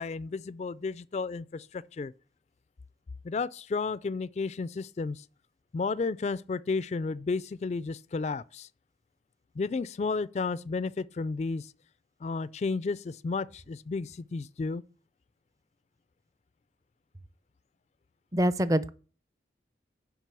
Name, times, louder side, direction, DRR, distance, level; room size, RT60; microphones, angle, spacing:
voice 1, 0.0-2.1 3.2-5.2 5.7-8.7 9.6-11.7 12.2-14.8, left 4 dB, 40° left, 0.3 m, -32 dB
voice 2, 18.3-18.9, equal, 20° right, 0.5 m, -25 dB
7.5 x 5.4 x 6.8 m
head